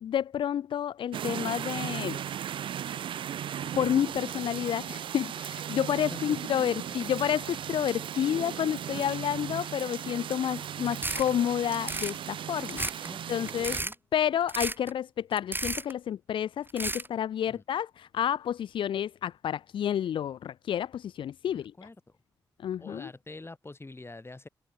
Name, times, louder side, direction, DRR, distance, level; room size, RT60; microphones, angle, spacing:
voice 1, 0.0-2.2 3.8-13.8 14.1-21.7 22.6-23.1, left 10 dB, 80° left, 2.0 m, -30 dB
sound 1, 1.1-13.8, right 10 dB, 80° right, 2.3 m, -37 dB
sound 2, 10.9-11.3 11.7-12.2 12.6-13.1 13.5-13.9 14.5-14.9 15.4-15.9 16.7-17.1, right 2 dB, 25° right, 4.8 m, -32 dB
voice 2, 13.1-14.0 17.5-17.6 21.5-22.2 22.8-24.5, left 2 dB, 30° left, 5.6 m, -45 dB
supercardioid pair, 45°, 8 cm